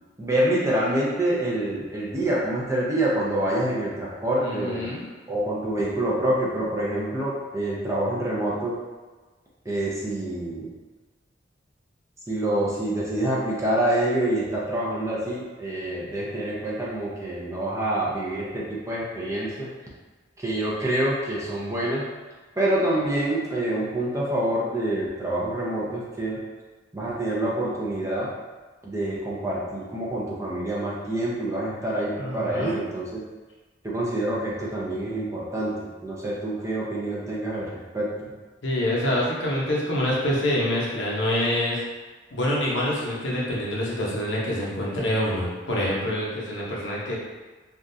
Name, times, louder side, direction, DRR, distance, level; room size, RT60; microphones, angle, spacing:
voice 1, 0.2-4.9 5.3-8.8 9.6-10.7 12.3-19.7 20.4-22.1 22.6-26.4 26.9-28.3 28.8-33.2 33.8-38.3, right 1 dB, 15° right, -6 dB, 0.6 m, -26 dB
voice 2, 4.4-5.1 32.2-32.7 38.6-41.8 42.3-47.1, left 1 dB, 85° left, -5 dB, 0.8 m, -26 dB
3.5 x 2.4 x 2.6 m, 1.3 s
head